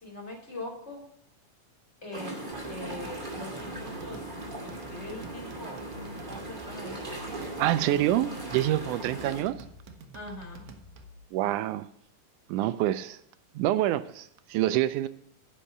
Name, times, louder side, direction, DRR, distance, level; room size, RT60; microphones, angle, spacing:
voice 1, 0.0-1.0 2.0-2.4 2.6-4.2 4.6-5.8 6.3-7.1 10.1-10.7, left 1 dB, 20° left, 2.8 m, -42 dB
sound 1, 2.1-9.4, right 2 dB, 15° right, 2.1 m, -39 dB
sound 2, 2.5-11.2, right 1 dB, 70° right, 2.2 m, -48 dB
voice 2, 7.6-9.6 11.3-11.9 12.5-13.2 13.6-15.1, right 14 dB, 85° right, 2.0 m, -27 dB
10.0 x 5.5 x 7.2 m
omnidirectional pair, 3.5 m